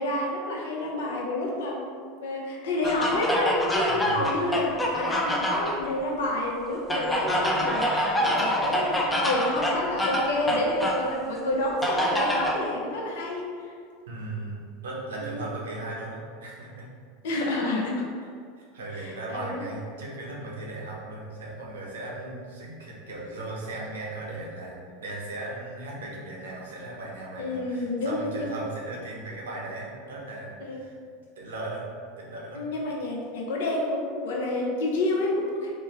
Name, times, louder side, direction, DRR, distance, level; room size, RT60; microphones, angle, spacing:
voice 1, 0.0-13.7 15.2-15.4 17.2-18.0 19.0-19.6 27.4-28.5 30.6-30.8 32.5-35.7, left 2 dB, 80° left, -1 dB, 0.6 m, -29 dB
sound 1, 2.8-5.8 6.9-11.1 11.8-12.6, equal, 10° left, 0.4 m, -26 dB
voice 2, 3.8-4.2 14.1-16.9 18.6-30.9 31.4-31.9 32.2-32.6, right 2 dB, 90° right, -3 dB, 0.7 m, -37 dB
3.0 x 2.2 x 3.3 m, 2.1 s
hypercardioid pair, 110°, 0 cm